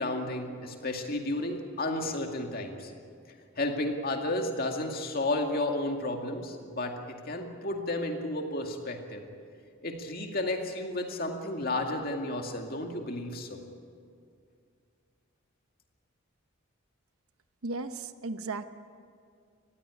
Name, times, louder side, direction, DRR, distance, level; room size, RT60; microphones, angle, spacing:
voice 1, 0.0-2.9 3.6-9.2 9.8-13.6, left 2 dB, 45° left, 3 dB, 2.2 m, -32 dB
voice 2, 17.6-18.6, right 3 dB, 85° right, 10 dB, 0.9 m, -35 dB
19.5 x 15.5 x 9.8 m, 2.3 s
head